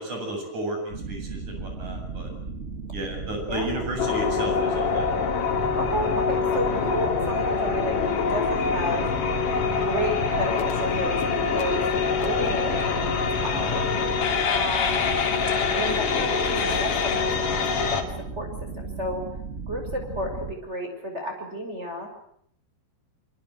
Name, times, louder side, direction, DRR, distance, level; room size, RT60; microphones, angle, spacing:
voice 1, 0.0-2.3 2.9-5.1 16.1-16.2, right 1 dB, 45° right, 3 dB, 9.1 m, -33 dB
sound 1, 0.9-20.5, right 4 dB, 90° right, 0.6 m, -35 dB
voice 2, 3.5-3.9 5.8-9.0 9.7-13.9 14.5-15.1 15.8-19.3 19.7-22.1, equal, 15° right, 2 dB, 5.6 m, -32 dB
sound 2, 4.0-18.0, left 5 dB, 55° left, 4.0 m, -25 dB
25.5 x 25.0 x 8.0 m, 0.69 s
omnidirectional pair, 4.8 m